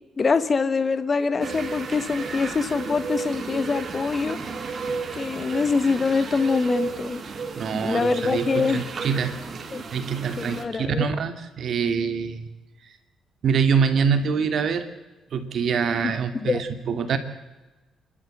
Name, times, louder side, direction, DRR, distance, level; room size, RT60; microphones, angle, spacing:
voice 1, 0.2-4.4 5.1-7.2 7.7-8.8 9.7-9.8 10.4-11.0 16.0-16.1 16.4-16.6, left 4 dB, 35° left, 12 dB, 1.3 m, -24 dB
sound 1, 1.4-10.6, right 4 dB, 45° right, 2.8 m, -33 dB
voice 2, 7.2-9.4 9.9-12.5 13.4-14.8 15.3-17.2, right 6 dB, 60° right, 8 dB, 2.5 m, -25 dB
28.0 x 12.5 x 7.9 m, 1.1 s
cardioid pair, 90°, 0 cm